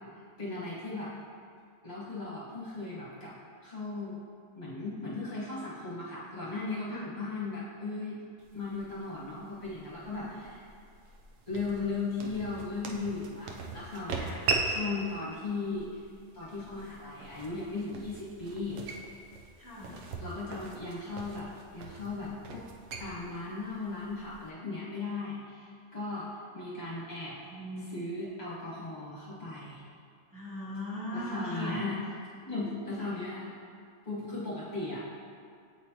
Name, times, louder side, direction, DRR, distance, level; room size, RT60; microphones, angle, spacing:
voice 1, 0.4-1.1 1.8-3.3 3.6-4.2 4.5-8.2 8.5-10.6 11.5-14.3 14.6-16.0 16.3-18.8 20.2-22.6 23.0-26.3 26.5-27.3 27.9-29.8 31.1-32.0 32.4-33.5 34.0-35.0, left 3 dB, 40° left, -9 dB, 1.4 m, -37 dB
sound 1, 8.4-24.5, right 4 dB, 80° right, 1.0 m, -40 dB
voice 2, 14.1-14.4 19.6-20.0 26.8-26.9 27.5-27.9 30.3-31.8, equal, 20° right, -7 dB, 0.8 m, -39 dB
8.0 x 4.2 x 2.9 m, 2.3 s
omnidirectional pair, 1.3 m